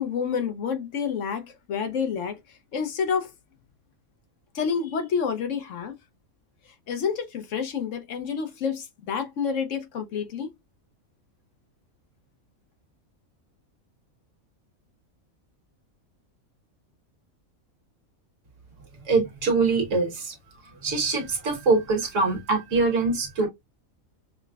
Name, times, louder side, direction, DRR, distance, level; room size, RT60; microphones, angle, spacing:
voice 1, 0.0-3.3 4.5-5.9 6.9-10.5, left 6 dB, 70° left, 1.0 m, -29 dB
voice 2, 19.1-20.3 20.7-23.5, right 3 dB, 65° right, 1.4 m, -23 dB
5.8 x 2.1 x 2.2 m
omnidirectional pair, 1.4 m